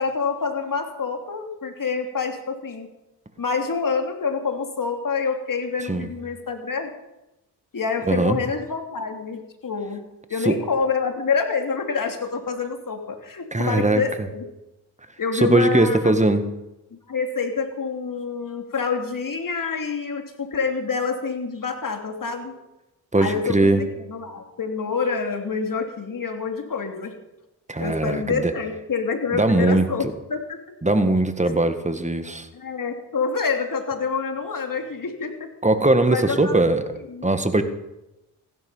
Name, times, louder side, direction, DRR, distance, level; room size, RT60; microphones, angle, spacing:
voice 1, 0.0-2.9 3.4-6.9 7.7-10.0 10.3-14.4 15.2-16.2 17.1-22.5 23.2-27.1 27.8-30.6 32.5-35.5 36.1-36.6 37.1-37.2, left 5 dB, 50° left, 5 dB, 2.8 m, -27 dB
voice 2, 8.1-8.4 10.4-10.5 13.5-14.0 15.3-16.5 23.1-23.8 27.7-28.5 29.3-30.1 30.8-32.5 35.6-36.8 37.2-37.6, right 2 dB, 15° right, 9 dB, 1.8 m, -20 dB
15.5 x 11.0 x 5.6 m, 0.94 s
supercardioid pair, 55°, 41 cm